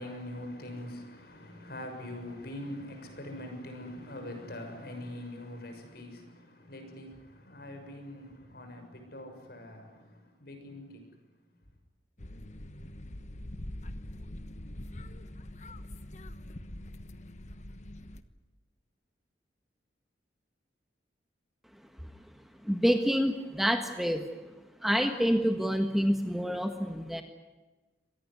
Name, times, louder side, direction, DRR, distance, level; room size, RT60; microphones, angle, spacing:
voice 1, 0.0-11.2, left 1 dB, 60° left, 6.6 m, -43 dB
sound 1, 12.2-18.2, left 1 dB, 40° left, 1.2 m, -43 dB
voice 2, 22.6-24.3 24.8-27.2, equal, ahead, 1.5 m, -27 dB
25.5 x 19.0 x 9.7 m
head